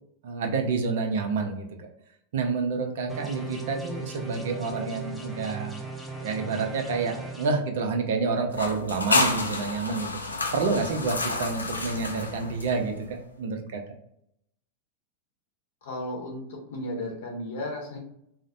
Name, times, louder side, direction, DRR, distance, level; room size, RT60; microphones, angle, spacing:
voice 1, 0.2-1.9 2.3-5.8 6.2-10.2 10.5-13.8, right 4 dB, 55° right, 4 dB, 0.4 m, -28 dB
sound 1, 3.1-7.5, right 3 dB, ahead, 0.5 m, -38 dB
sound 2, 8.5-13.1, left 2 dB, 80° left, 0.3 m, -29 dB
voice 2, 15.8-18.0, left 1 dB, 60° left, 0 dB, 0.7 m, -34 dB
2.4 x 2.0 x 2.6 m, 0.75 s
figure-of-eight pair, 90°, 0 cm